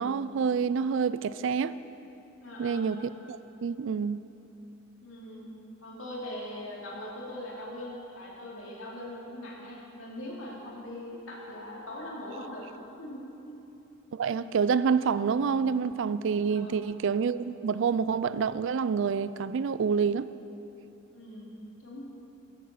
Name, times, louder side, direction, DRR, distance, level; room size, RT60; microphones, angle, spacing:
voice 1, 0.0-1.8 2.6-3.0 3.3-4.2 14.1-20.3, right 6 dB, 65° right, 0.4 m, -27 dB
voice 2, 2.4-2.9 5.0-5.5 5.8-12.7 13.0-13.6 16.5-16.8 21.1-21.5 21.8-22.0, left 1 dB, 70° left, 2.8 m, -41 dB
13.0 x 8.7 x 6.6 m
head